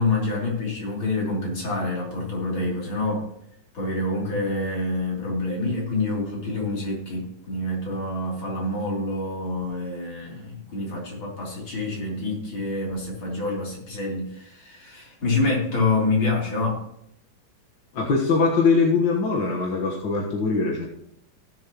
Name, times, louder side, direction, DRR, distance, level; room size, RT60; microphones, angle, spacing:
voice 1, 0.0-3.3 3.7-16.8, left 2 dB, 85° left, -3 dB, 4.0 m, -27 dB
voice 2, 17.9-20.9, left 4 dB, 70° left, -1 dB, 2.0 m, -22 dB
18.0 x 6.8 x 3.0 m, 0.76 s
omnidirectional pair, 2.1 m